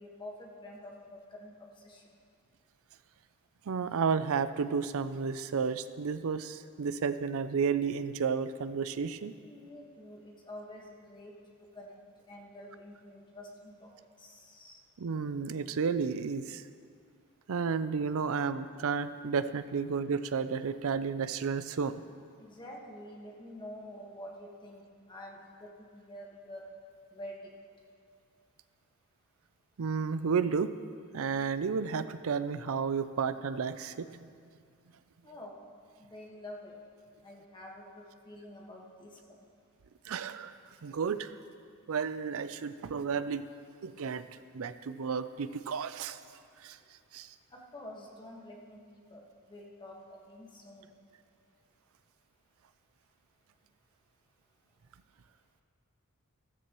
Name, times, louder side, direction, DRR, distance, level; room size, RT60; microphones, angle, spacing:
voice 1, 0.0-2.0 9.4-11.3 11.7-12.0 12.3-13.9 14.2-14.8 22.4-26.7 27.1-27.4 35.2-35.6 36.0-36.7 37.2-39.4 47.5-50.9, left 1 dB, 20° left, -2 dB, 1.6 m, -48 dB
voice 2, 3.7-9.3 15.0-16.6 17.5-21.9 29.8-30.7 31.1-34.3 40.1-40.5 40.8-41.3 41.9-43.4 43.8-44.2 44.5-46.2 46.6-46.8 47.1-47.3, right 5 dB, 65° right, 13 dB, 0.5 m, -32 dB
14.0 x 13.5 x 3.1 m, 2.2 s
head